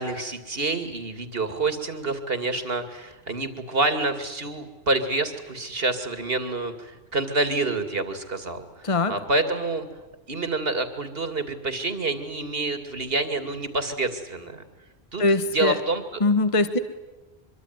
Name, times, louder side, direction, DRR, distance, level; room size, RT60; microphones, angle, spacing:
voice 1, 0.0-9.9 10.3-14.6 15.1-15.2 15.5-16.0, right 2 dB, 65° right, 9 dB, 2.8 m, -27 dB
voice 2, 8.8-9.1 15.2-15.8 16.2-16.8, left 2 dB, 30° left, 11 dB, 1.4 m, -21 dB
25.0 x 23.5 x 9.7 m, 1.1 s
omnidirectional pair, 1.1 m